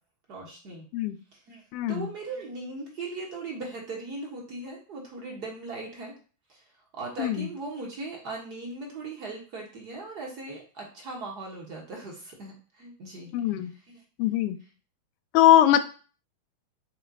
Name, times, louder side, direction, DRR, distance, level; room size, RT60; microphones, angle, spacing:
voice 1, 0.3-0.9 1.3-1.6 1.9-6.1 6.5-6.6 6.9-14.0, right 3 dB, 45° right, -1 dB, 1.1 m, -39 dB
voice 2, 1.7-2.1 7.2-7.5 13.3-13.7 14.2-14.6 15.3-15.8, left 12 dB, 45° left, 10 dB, 0.4 m, -21 dB
4.1 x 2.9 x 2.7 m, 0.38 s
figure-of-eight pair, 90°, 0 cm